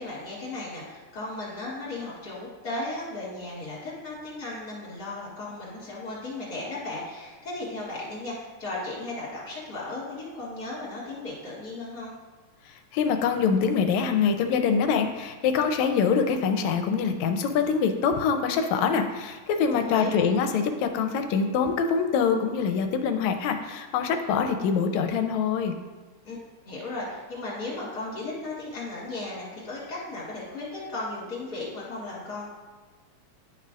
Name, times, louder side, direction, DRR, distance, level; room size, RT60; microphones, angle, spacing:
voice 1, 0.0-12.2 19.7-20.2 26.2-26.4 26.7-32.5, left 2 dB, 35° left, -6 dB, 2.3 m, -36 dB
voice 2, 12.9-25.8, left 6 dB, 80° left, 6 dB, 1.9 m, -24 dB
11.0 x 5.7 x 2.5 m, 1.3 s
omnidirectional pair, 3.3 m